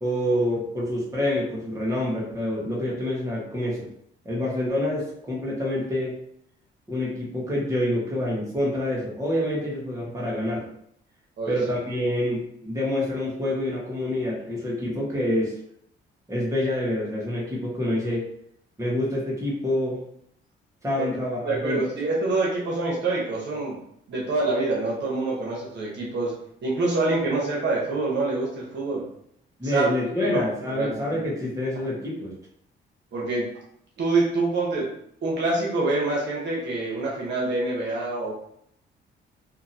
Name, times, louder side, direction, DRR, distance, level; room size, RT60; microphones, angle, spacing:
voice 1, 0.0-3.9 4.2-6.1 6.9-10.6 11.5-15.5 16.3-18.3 18.8-20.0 20.8-21.8 29.6-32.3, left 1 dB, 15° right, -5 dB, 1.2 m, -27 dB
voice 2, 21.4-23.8 24.1-26.3 26.6-29.0 29.6-29.9 30.2-30.4 30.7-31.2 33.1-33.5 34.0-34.9 35.2-38.3, right 2 dB, 65° right, -4 dB, 1.0 m, -26 dB
2.9 x 2.6 x 2.7 m, 0.71 s
cardioid pair, 90°, 20 cm